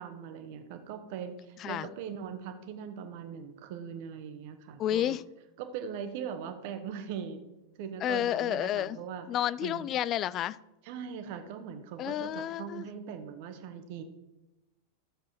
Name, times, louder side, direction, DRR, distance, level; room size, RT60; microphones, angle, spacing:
voice 1, 0.0-5.2 5.6-7.4 7.7-9.3 9.6-9.9 10.8-14.0, right 7 dB, 45° right, 7 dB, 1.4 m, -40 dB
voice 2, 4.8-5.2 8.0-9.0 9.3-10.6 12.0-12.9, left 11 dB, 30° left, 19 dB, 0.4 m, -30 dB
13.5 x 7.5 x 4.4 m, 0.96 s
figure-of-eight pair, 90°, 0 cm